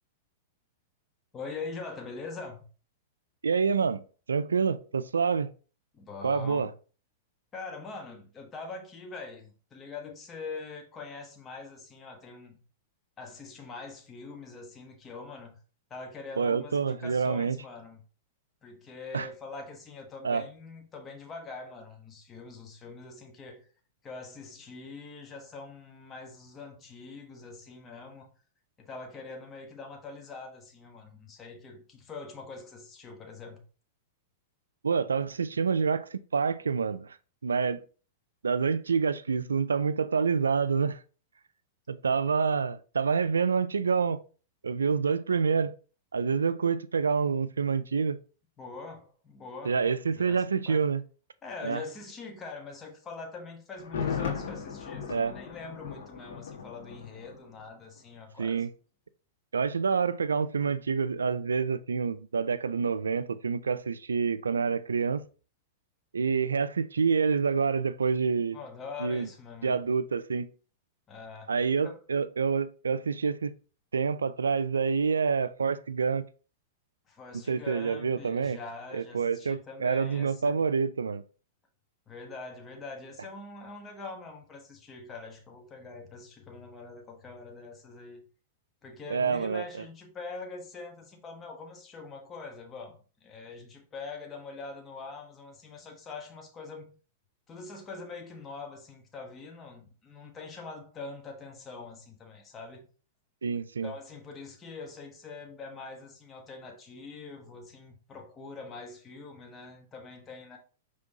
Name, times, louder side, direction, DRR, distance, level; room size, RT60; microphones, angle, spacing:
voice 1, 1.3-2.7 5.9-6.7 7.5-12.6 13.2-15.6 15.9-18.0 18.6-23.7 24.0-28.3 28.8-33.6 48.6-50.9 51.4-58.7 68.5-69.8 71.1-71.5 71.8-72.0 77.1-80.6 82.1-88.2 88.8-96.9 97.5-102.9 103.8-110.6, left 4 dB, 25° left, 1.1 m, -43 dB
voice 2, 3.4-4.0 4.3-5.5 6.2-6.7 16.4-17.6 19.1-19.3 20.2-20.4 34.8-37.2 37.4-37.8 38.4-41.0 41.9-44.2 44.6-45.7 46.1-48.2 49.6-51.0 51.6-51.8 55.1-55.3 58.4-58.7 59.5-65.2 66.1-68.6 69.0-69.3 69.6-70.5 71.5-73.5 73.9-76.2 77.5-78.6 78.9-81.2 89.1-89.6 103.4-103.9, right 5 dB, 90° right, 0.3 m, -27 dB
Thunder, 53.8-57.7 58.0-58.1, left 6 dB, 70° left, 1.5 m, -36 dB
5.2 x 3.4 x 2.7 m
hypercardioid pair, 110°, 0 cm